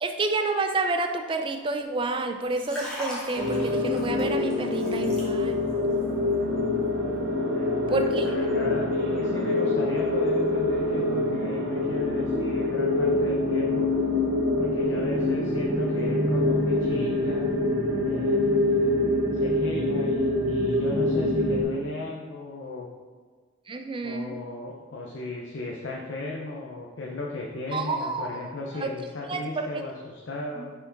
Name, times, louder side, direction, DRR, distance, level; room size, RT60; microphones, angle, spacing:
voice 1, 0.0-5.6 7.9-8.3 23.7-24.3 27.7-28.3 28.8-28.9 29.3-29.4 30.6-30.7, right 3 dB, 25° right, 6 dB, 0.4 m, -29 dB
Liquid, 2.4-5.7 6.0-6.3, equal, 5° left, 1.3 m, -39 dB
sound 1, 3.4-21.6, left 2 dB, 70° right, 1.1 m, -25 dB
voice 2, 7.5-13.9 14.6-17.5 18.0-18.9 19.3-22.9 24.0-30.7, left 2 dB, 70° left, -1 dB, 0.6 m, -36 dB
5.9 x 4.5 x 3.9 m, 1.5 s
head